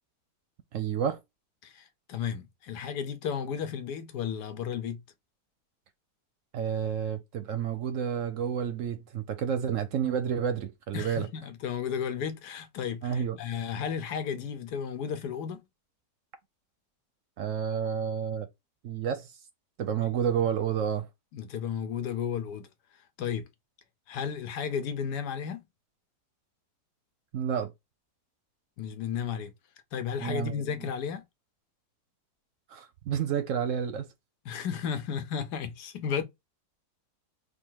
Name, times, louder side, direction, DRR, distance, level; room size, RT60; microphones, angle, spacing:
voice 1, 0.7-1.2 6.5-11.3 13.0-13.4 17.4-18.5 18.8-19.3 19.8-21.1 27.3-27.7 30.2-30.7 32.7-34.1, right 8 dB, 65° right, 0.8 m, -30 dB
voice 2, 1.6-5.0 10.9-15.6 21.3-22.7 23.2-23.5 24.1-25.6 28.8-29.5 29.9-31.2 34.4-36.2, left 7 dB, 85° left, 1.3 m, -33 dB
3.6 x 2.3 x 4.5 m
omnidirectional pair, 1.7 m